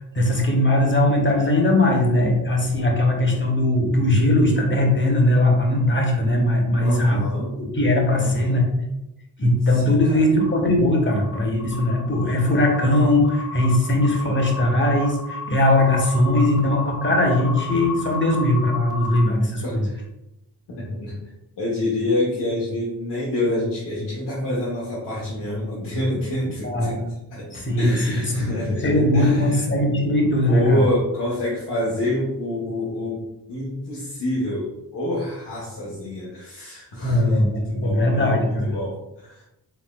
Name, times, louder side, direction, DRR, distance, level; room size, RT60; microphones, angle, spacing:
voice 1, 0.1-7.2 7.5-8.8 9.4-19.8 26.6-27.0 27.5-27.9 28.4-28.5 28.8-30.8 37.0-38.7, left 1 dB, 30° left, 1 dB, 1.1 m, -20 dB
voice 2, 6.8-7.5 8.1-8.6 9.7-10.2 19.6-20.0 20.8-21.1 21.6-26.9 27.3-29.6 30.5-33.2 33.5-37.4 37.7-39.4, left 1 dB, 75° left, -7 dB, 1.3 m, -27 dB
sound 1, 10.4-10.6 11.1-19.3, left 4 dB, 10° right, 0.9 m, -34 dB
4.5 x 3.5 x 2.4 m, 0.90 s
cardioid pair, 55°, 42 cm